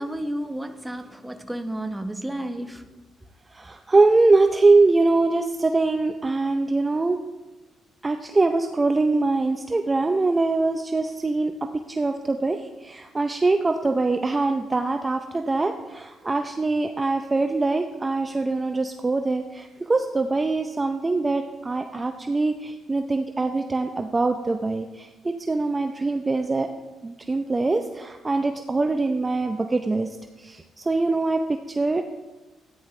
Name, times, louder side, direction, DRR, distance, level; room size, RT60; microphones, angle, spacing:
voice 1, 0.0-2.8, right 1 dB, 5° right, 7 dB, 0.9 m, -31 dB
voice 2, 3.5-7.2 8.0-26.7 27.0-30.1 30.4-32.1, right 3 dB, 25° right, 6 dB, 0.6 m, -23 dB
14.0 x 9.9 x 3.3 m, 1.2 s
cardioid pair, 90°, 0 cm